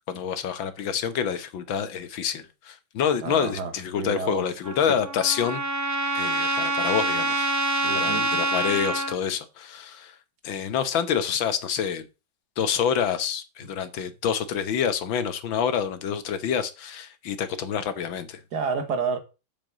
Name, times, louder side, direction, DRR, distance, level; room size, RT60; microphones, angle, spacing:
voice 1, 0.1-5.6 6.1-7.5 8.0-10.2 10.4-12.1 12.6-18.4, left 8 dB, 75° left, 1.9 m, -27 dB
voice 2, 3.2-4.4 4.9-5.0 7.8-8.2 18.5-19.2, right 5 dB, 55° right, 2.1 m, -29 dB
Trumpet, 4.6-9.2, right 2 dB, 20° right, 0.5 m, -26 dB
7.8 x 7.1 x 7.3 m
omnidirectional pair, 2.2 m